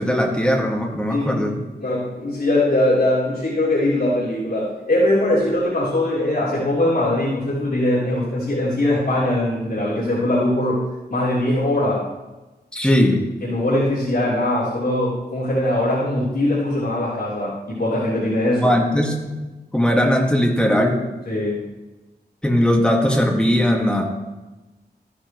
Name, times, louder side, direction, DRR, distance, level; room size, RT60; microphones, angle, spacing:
voice 1, 0.0-1.6 12.7-13.3 18.5-19.3 19.7-21.0 22.4-24.0, equal, 5° left, 0 dB, 1.9 m, -19 dB
voice 2, 1.1-1.4 1.8-10.8 11.1-12.0 13.4-18.7 21.3-21.7, left 1 dB, 65° left, -10 dB, 3.8 m, -21 dB
14.5 x 10.0 x 3.1 m, 1.1 s
wide cardioid pair, 105°, 17 cm